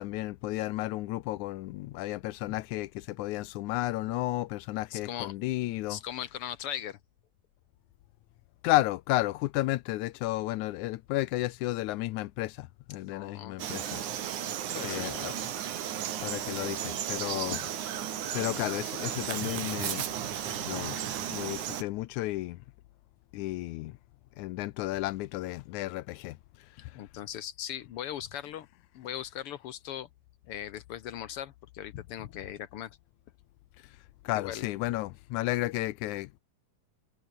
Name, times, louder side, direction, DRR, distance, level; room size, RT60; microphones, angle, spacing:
voice 1, 0.0-6.0 8.6-14.0 14.8-15.4 16.2-17.7 18.3-20.1 20.5-21.0 21.3-22.6 23.3-24.0 24.4-27.0 33.8-34.0 34.2-36.4, left 17 dB, 90° left, 2.1 m, -32 dB
voice 2, 4.9-5.3 5.9-7.0 13.1-13.6 14.7-15.1 26.9-28.7 28.9-30.1 30.5-33.0 34.3-34.6, left 11 dB, 65° left, 1.5 m, -39 dB
Frog, 13.6-21.8, right 10 dB, 80° right, 3.3 m, -34 dB
omnidirectional pair, 3.4 m